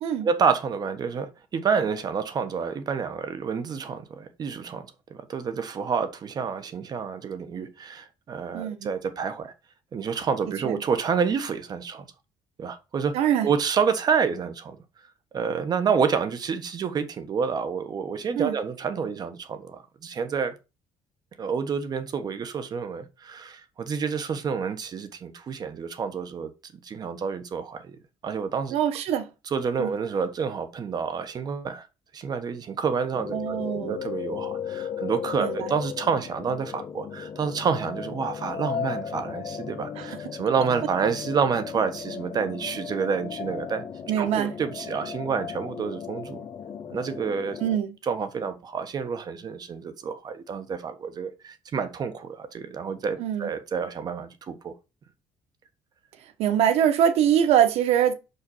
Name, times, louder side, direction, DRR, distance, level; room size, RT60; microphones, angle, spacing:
voice 1, 0.2-9.5 9.9-12.1 12.6-13.1 13.4-14.8 15.3-20.5 21.4-28.0 28.2-28.8 29.5-31.9 32.1-43.8 44.2-46.4 46.9-47.6 48.1-54.7, right 6 dB, 40° right, 1.3 m, -28 dB
voice 2, 8.5-8.9 10.6-10.7 13.1-13.5 18.3-18.5 28.7-29.3 29.8-29.9 33.3-34.0 35.4-35.7 40.0-40.2 44.1-44.5 47.6-47.9 53.2-53.5 56.4-58.1, right 9 dB, 80° right, 1.4 m, -23 dB
sound 1, 33.1-47.8, left 7 dB, 40° left, 1.1 m, -36 dB
5.6 x 5.6 x 5.6 m
cardioid pair, 135°, 10 cm